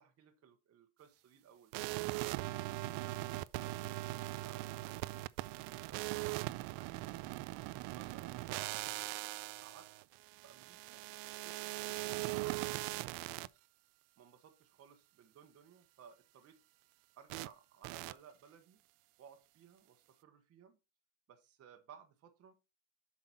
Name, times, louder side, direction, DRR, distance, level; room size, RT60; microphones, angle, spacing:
voice 1, 0.0-1.7 2.1-2.4 3.0-5.0 5.6-7.1 7.8-8.4 9.1-9.9 10.4-11.0 12.3-13.6 14.2-16.6 17.2-18.8 19.2-20.8 21.3-22.5, right 7 dB, 35° right, 5 dB, 1.2 m, -60 dB
sound 1, 1.7-13.5 17.3-17.5 17.8-18.1, right 20 dB, 80° right, 0.5 m, -40 dB
8.1 x 5.9 x 4.3 m, 0.27 s
cardioid pair, 175°, 43 cm